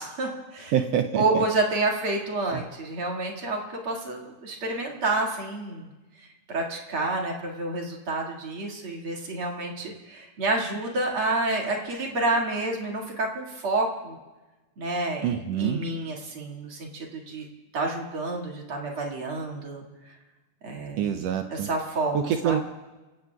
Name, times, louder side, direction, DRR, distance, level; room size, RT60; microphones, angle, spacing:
voice 1, 0.0-0.8 1.2-5.9 6.2-14.2 14.8-17.4 17.7-20.1 20.6-21.1 21.5-22.6, right 2 dB, 50° right, 0 dB, 2.8 m, -29 dB
voice 2, 0.7-1.2 2.5-2.6 15.2-15.8 21.0-21.7 22.1-22.6, right 9 dB, 75° right, 7 dB, 1.6 m, -25 dB
29.5 x 16.0 x 2.4 m, 1.2 s
omnidirectional pair, 3.3 m